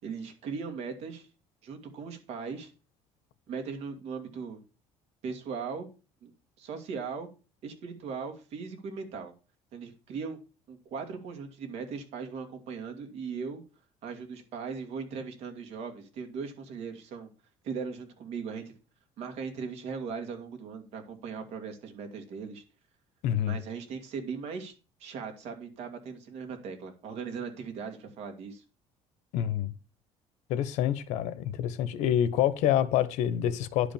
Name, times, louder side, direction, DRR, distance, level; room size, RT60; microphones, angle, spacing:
voice 1, 0.0-1.3 1.6-2.7 3.5-4.6 5.2-5.9 6.2-6.3 6.6-7.3 7.6-9.3 9.7-10.4 10.7-13.6 14.0-17.3 17.6-18.7 19.2-22.6 23.5-24.7 25.0-28.6, right 5 dB, 65° right, 2.7 m, -38 dB
voice 2, 23.2-23.6 29.3-29.7 30.5-33.9, left 10 dB, 85° left, 1.1 m, -27 dB
11.0 x 5.2 x 7.1 m
cardioid pair, 150°, 12 cm